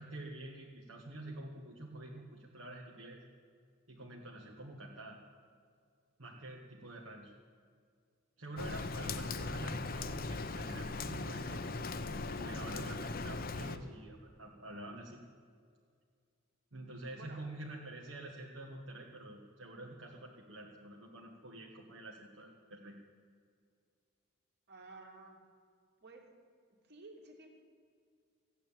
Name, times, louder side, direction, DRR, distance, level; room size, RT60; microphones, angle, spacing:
voice 1, 0.0-3.2 3.9-5.2 6.2-7.3 8.4-11.9 12.3-15.2 16.7-23.0, right 1 dB, 65° right, -3 dB, 1.7 m, -47 dB
Rain, 8.6-13.8, left 3 dB, 45° left, 0.8 m, -39 dB
voice 2, 17.1-17.4 24.7-25.4 26.0-26.3 26.9-27.5, right 3 dB, 50° right, 1 dB, 2.6 m, -53 dB
15.5 x 9.3 x 8.9 m, 2.1 s
head